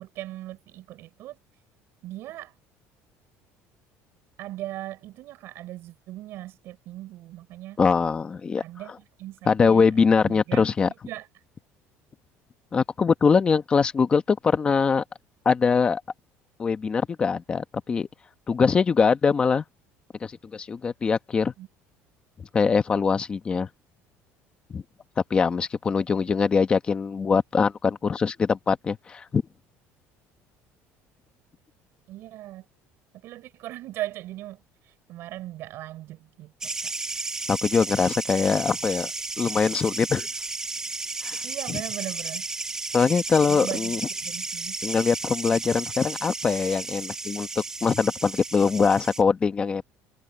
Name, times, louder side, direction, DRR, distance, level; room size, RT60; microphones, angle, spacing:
voice 1, 0.0-1.4 2.0-2.5 4.4-7.8 8.6-10.7 11.1-11.3 21.6-21.7 32.1-32.6 33.2-37.3 41.4-42.5 43.5-44.8, right 15 dB, 50° right, 5.9 m, -39 dB
voice 2, 7.8-8.6 9.5-10.9 12.7-15.0 15.4-16.0 16.6-18.1 18.5-19.6 20.2-21.5 22.5-23.7 24.7-24.8 25.3-29.4 37.5-39.1 39.4-40.3 41.2-41.4 41.7-41.8 42.9-44.0 44.8-47.5 47.8-49.8, left 5 dB, 20° left, 1.1 m, -22 dB
sound 1, 36.6-49.2, right 3 dB, 10° right, 1.3 m, -33 dB
cardioid pair, 175°, 5 cm